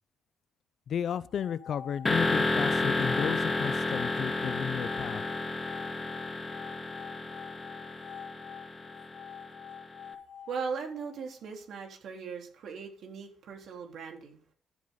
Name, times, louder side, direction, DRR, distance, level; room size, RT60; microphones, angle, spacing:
voice 1, 0.9-5.2, left 8 dB, 60° left, 17 dB, 0.7 m, -33 dB
sound 1, 1.3-11.4, left 8 dB, 80° left, 2.8 m, -46 dB
sound 2, 2.0-9.8, left 2 dB, 20° left, 2.3 m, -31 dB
voice 2, 10.5-14.4, right 5 dB, 70° right, 1 dB, 4.0 m, -39 dB
14.5 x 8.5 x 4.0 m, 0.40 s
cardioid pair, 90°, 0 cm